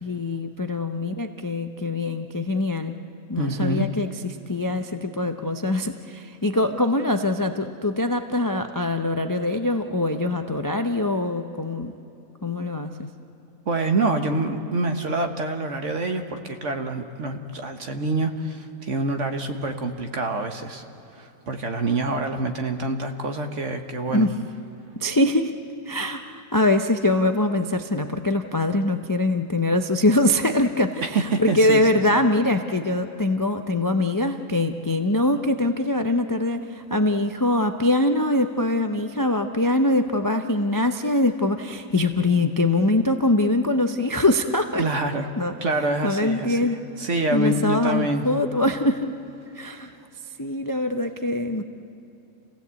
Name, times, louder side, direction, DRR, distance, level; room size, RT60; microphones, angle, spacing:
voice 1, 0.0-2.9 3.3-11.9 12.4-12.9 24.1-24.3 25.0-25.6 25.9-44.9 45.4-45.5 46.0-46.8 47.3-49.1 49.5-49.9 50.4-51.6, left 1 dB, 25° left, 6 dB, 0.4 m, -23 dB
voice 2, 3.4-3.9 13.7-20.8 21.2-24.3 31.1-32.0 44.8-45.3 45.6-48.2, right 2 dB, 50° right, 6 dB, 1.6 m, -26 dB
28.0 x 17.0 x 8.3 m, 2.9 s
omnidirectional pair, 1.6 m